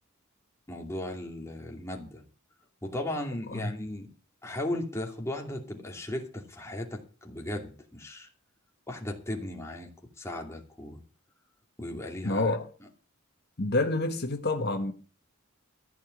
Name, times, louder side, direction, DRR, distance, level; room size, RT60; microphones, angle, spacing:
voice 1, 0.7-2.2 2.8-4.1 4.4-8.3 8.9-9.9 10.2-11.0 11.8-12.5, left 1 dB, 15° left, 2.6 m, -36 dB
voice 2, 12.2-12.7 13.6-14.9, left 2 dB, 50° left, 1.5 m, -28 dB
15.0 x 5.1 x 9.5 m
head